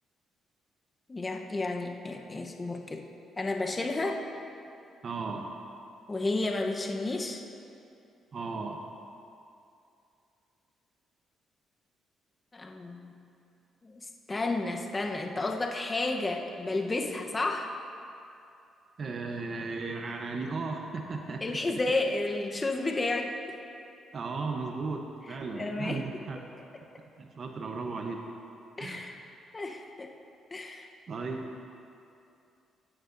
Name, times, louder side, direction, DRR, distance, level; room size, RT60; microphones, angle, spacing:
voice 1, 1.1-3.1 3.4-4.2 6.1-7.4 12.5-13.1 13.8-17.7 21.4-23.6 25.5-26.1 28.8-29.2 29.5-30.1 30.5-30.9, left 2 dB, 25° left, 2 dB, 0.9 m, -32 dB
voice 2, 5.0-5.5 8.3-8.8 19.0-21.6 24.1-26.4 27.2-28.2 28.8-29.2 31.1-31.5, right 4 dB, 50° right, 3 dB, 0.8 m, -36 dB
15.5 x 9.4 x 2.6 m, 2.6 s
cardioid pair, 90°, 0 cm